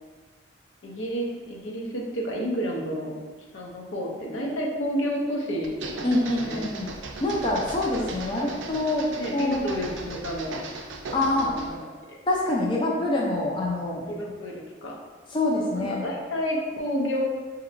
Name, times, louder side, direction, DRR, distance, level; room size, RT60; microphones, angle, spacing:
voice 1, 0.8-3.2 3.5-6.1 6.4-6.7 9.2-10.6 11.3-11.8 12.1-12.2 14.1-14.9 15.7-17.3, equal, 80° left, -1 dB, 0.7 m, -30 dB
sound 1, 5.6-11.8, right 3 dB, 75° right, 0.4 m, -38 dB
voice 2, 6.0-6.9 7.2-10.1 11.1-11.5 12.3-14.1 15.3-16.1, left 2 dB, 25° left, -3 dB, 0.4 m, -26 dB
5.1 x 2.8 x 2.5 m, 1.5 s
head